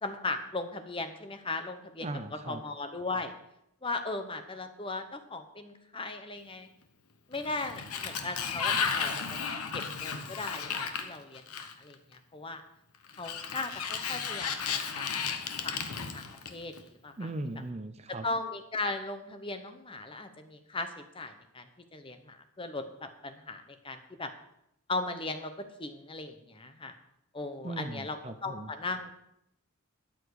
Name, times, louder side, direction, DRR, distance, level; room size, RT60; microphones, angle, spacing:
voice 1, 0.0-2.1 2.4-3.3 3.8-6.7 7.3-12.6 13.2-15.1 15.6-15.8 16.1-17.3 18.2-21.7 21.9-24.3 24.9-26.9 27.3-29.1, left 3 dB, 25° left, 8 dB, 0.9 m, -38 dB
voice 2, 2.0-2.6 17.2-18.3 27.6-28.7, right 2 dB, 30° right, 10 dB, 0.6 m, -38 dB
Sliding door, 7.3-11.9 13.1-16.8, left 6 dB, 90° left, 1.1 m, -34 dB
12.5 x 9.0 x 4.9 m, 0.81 s
head